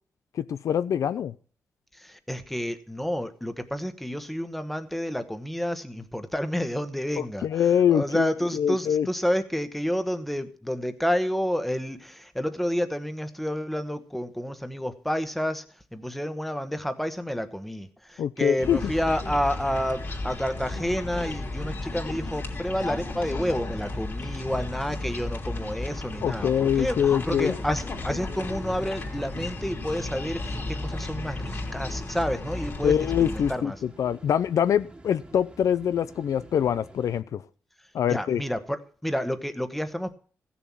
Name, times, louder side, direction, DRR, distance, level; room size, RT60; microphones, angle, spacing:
voice 1, 0.3-1.3 7.4-8.3 8.5-9.1 18.2-18.9 26.2-27.5 32.8-37.4 37.9-38.4, left 9 dB, 70° left, 0.5 m, -24 dB
voice 2, 1.9-33.7 38.1-40.1, equal, 5° left, 1.2 m, -30 dB
sound 1, 18.6-33.5, left 2 dB, 40° left, 3.0 m, -34 dB
sound 2, 26.3-37.2, right 1 dB, 15° right, 1.7 m, -49 dB
15.5 x 7.1 x 7.4 m
wide cardioid pair, 125°, 6 cm